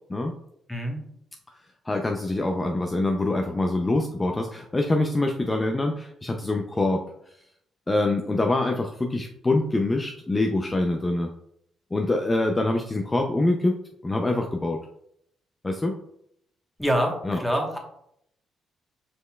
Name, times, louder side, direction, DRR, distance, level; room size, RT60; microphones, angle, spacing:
voice 1, 0.7-1.0 16.8-17.8, equal, ahead, 2 dB, 1.1 m, -25 dB
voice 2, 1.9-7.0 7.9-11.3 11.9-13.8 14.0-14.8 15.6-16.0 17.2-17.4, left 2 dB, 20° left, 3 dB, 0.5 m, -25 dB
5.2 x 4.3 x 2.3 m, 0.72 s
cardioid pair, 90°, 0 cm